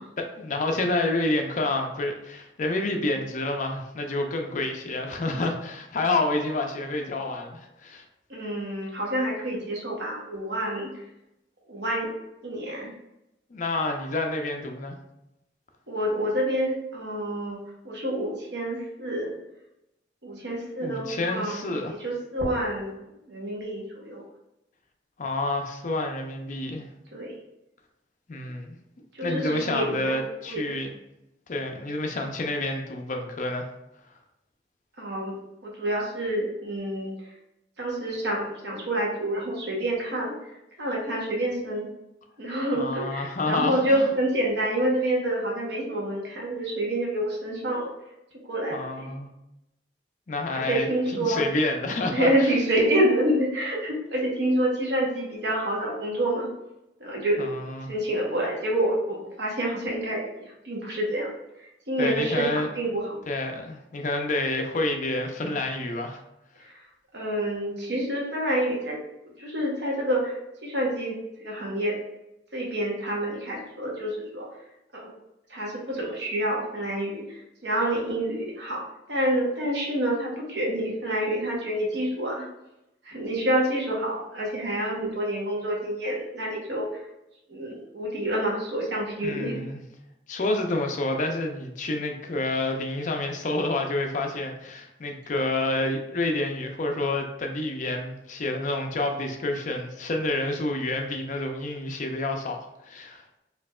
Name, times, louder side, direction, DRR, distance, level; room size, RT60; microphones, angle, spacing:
voice 1, 0.2-8.0 13.5-14.9 20.8-21.9 25.2-26.9 28.3-28.7 29.2-30.9 31.5-33.7 42.8-44.1 48.7-49.3 50.3-52.5 57.4-57.9 62.0-62.7 63.3-66.2 89.2-89.8 90.3-102.6 102.8-103.2, left 2 dB, 45° left, 3 dB, 0.5 m, -28 dB
voice 2, 8.3-10.9 11.7-12.1 12.4-12.9 15.9-19.3 20.2-22.9 23.3-24.2 27.1-27.3 29.1-30.2 30.5-30.6 35.0-35.4 35.6-37.1 37.8-40.5 40.8-41.9 42.4-47.9 48.4-49.1 50.7-51.4 52.1-56.5 57.0-57.4 57.9-61.3 61.9-63.2 66.6-66.8 67.1-68.9 69.2-72.0 72.5-74.5 75.0-75.1 75.5-77.2 77.6-78.8 79.1-82.5 83.0-86.9 87.5-89.6, right 1 dB, 65° right, -2 dB, 1.0 m, -28 dB
4.4 x 2.7 x 2.3 m, 0.88 s
head